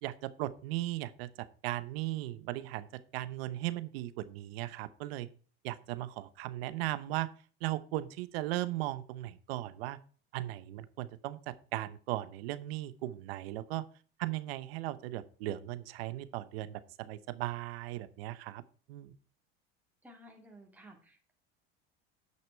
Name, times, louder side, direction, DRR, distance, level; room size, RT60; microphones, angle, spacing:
voice 1, 0.0-1.3 1.6-2.9 3.1-5.3 5.6-7.3 7.6-10.0 10.3-13.8 14.2-18.6 18.9-19.1, right 16 dB, 80° right, 15 dB, 0.9 m, -37 dB
voice 2, 20.0-21.3, equal, 5° right, 1 dB, 2.2 m, -55 dB
9.5 x 5.8 x 4.5 m, 0.41 s
supercardioid pair, 95°, 29 cm